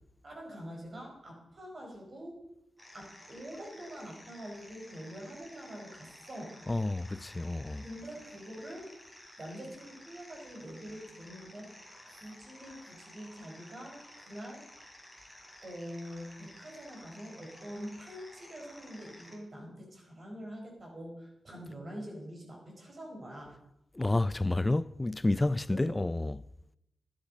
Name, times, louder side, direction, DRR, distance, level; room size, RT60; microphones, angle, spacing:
voice 1, 0.2-2.4 2.9-6.6 7.8-9.0 9.4-14.7 15.6-23.6 25.7-26.0, equal, 40° right, 4.8 m, -45 dB
sound 1, 2.8-19.4, equal, 10° right, 3.6 m, -54 dB
voice 2, 6.7-7.8 24.0-26.4, left 2 dB, 20° left, 0.4 m, -30 dB
12.0 x 11.5 x 5.4 m
wide cardioid pair, 95°, 0 cm